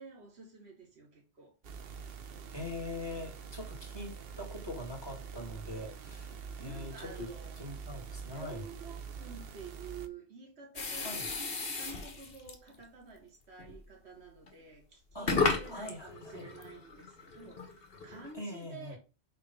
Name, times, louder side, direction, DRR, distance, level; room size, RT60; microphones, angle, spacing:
voice 1, 0.0-1.5 6.6-7.6 8.3-19.0, right 5 dB, 85° right, 1.8 m, -50 dB
sound 1, 1.6-10.1, right 6 dB, 65° right, 1.0 m, -45 dB
voice 2, 2.5-8.6 11.0-11.3 15.1-15.3 15.7-16.5 18.3-19.0, left 1 dB, 25° left, 2.9 m, -43 dB
sound 2, 10.8-12.7 13.6-13.8 14.5-14.6 15.1-18.3, left 3 dB, 60° left, 1.5 m, -35 dB
6.6 x 3.3 x 5.5 m
omnidirectional pair, 1.1 m